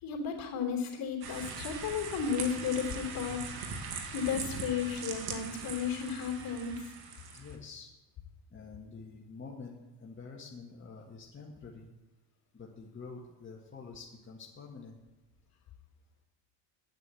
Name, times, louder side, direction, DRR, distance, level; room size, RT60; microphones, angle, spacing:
voice 1, 0.0-3.4 4.1-6.9, left 7 dB, 55° left, 1 dB, 3.3 m, -34 dB
sound 1, 1.2-7.6, right 5 dB, 60° right, 2.0 m, -41 dB
voice 2, 7.3-7.9 8.5-11.9 12.5-15.0, left 4 dB, 25° left, -2 dB, 1.7 m, -47 dB
8.8 x 8.2 x 7.9 m, 1.1 s
supercardioid pair, 90°, 43 cm